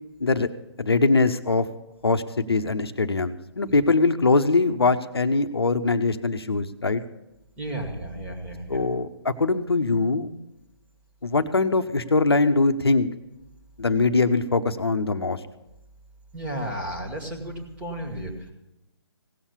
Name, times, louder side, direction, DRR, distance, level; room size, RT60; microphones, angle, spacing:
voice 1, 0.8-1.7 2.0-7.0 8.7-10.3 11.2-13.1 13.8-15.4, left 3 dB, 60° left, 9 dB, 0.9 m, -22 dB
voice 2, 3.6-3.9 7.6-8.8 16.3-18.5, right 1 dB, 10° right, 0 dB, 1.6 m, -33 dB
17.0 x 7.1 x 8.3 m, 0.92 s
figure-of-eight pair, 145°, 14 cm